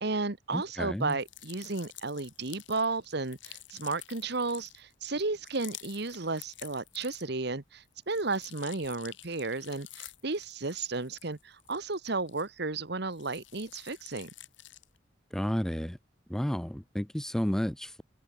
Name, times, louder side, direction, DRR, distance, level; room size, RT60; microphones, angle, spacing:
voice 1, 0.0-14.3, right 3 dB, 55° right, 1.4 m, -33 dB
voice 2, 0.5-1.2 15.3-16.0 16.3-18.0, equal, 5° left, 0.4 m, -31 dB
sound 1, 1.0-7.5 7.8-12.7 13.1-15.0, left 14 dB, 70° left, 4.2 m, -50 dB
head